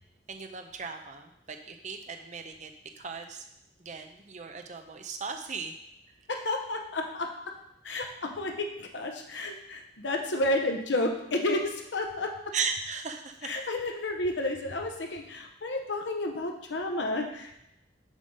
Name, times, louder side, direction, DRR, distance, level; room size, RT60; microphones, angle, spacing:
voice 1, 0.3-2.7 3.0-3.5 3.8-5.7 12.5-13.5, right 5 dB, 40° right, 6 dB, 0.6 m, -37 dB
voice 2, 6.3-7.3 7.8-12.3 13.4-17.5, left 1 dB, 75° left, 3 dB, 0.9 m, -31 dB
7.3 x 3.8 x 5.3 m, 0.83 s
head